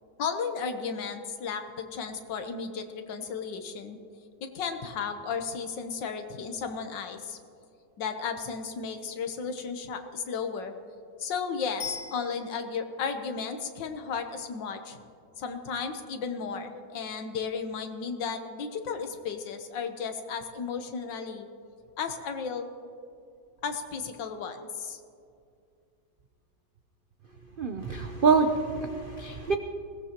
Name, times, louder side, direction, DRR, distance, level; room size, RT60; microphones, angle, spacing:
voice 1, 0.2-4.0 4.4-7.4 8.0-10.7 11.2-15.0 15.4-21.5 22.0-22.7 23.6-25.0, left 5 dB, 85° left, 6 dB, 1.7 m, -34 dB
Bicycle bell, 11.8-12.9 22.0-22.1, left 5 dB, 65° left, 1.9 m, -40 dB
voice 2, 27.6-29.6, right 5 dB, 80° right, 5 dB, 0.4 m, -25 dB
21.0 x 17.5 x 2.9 m, 2.4 s
omnidirectional pair, 1.9 m